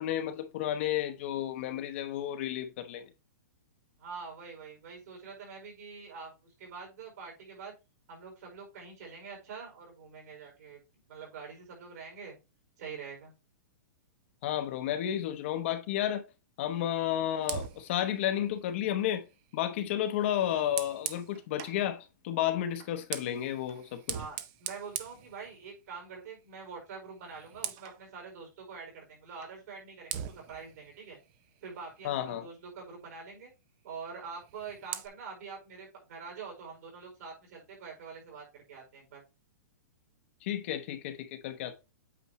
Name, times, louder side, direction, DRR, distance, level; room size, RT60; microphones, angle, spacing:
voice 1, 0.0-3.0 14.4-16.2 16.6-19.2 19.5-24.2 32.0-32.5 40.4-41.7, left 11 dB, 40° left, 0.8 m, -32 dB
voice 2, 4.0-7.7 8.1-10.8 11.1-12.4 12.8-13.3 24.1-31.2 31.6-33.5 33.8-39.2, right 5 dB, 60° right, 4.7 m, -45 dB
Fire, 17.4-21.8 22.7-26.0 26.3-26.6 26.9-28.0 29.4-29.6 30.1-32.4 34.3-35.1, right 11 dB, 30° right, 0.5 m, -42 dB
8.5 x 5.0 x 3.0 m
hypercardioid pair, 165°, 10 cm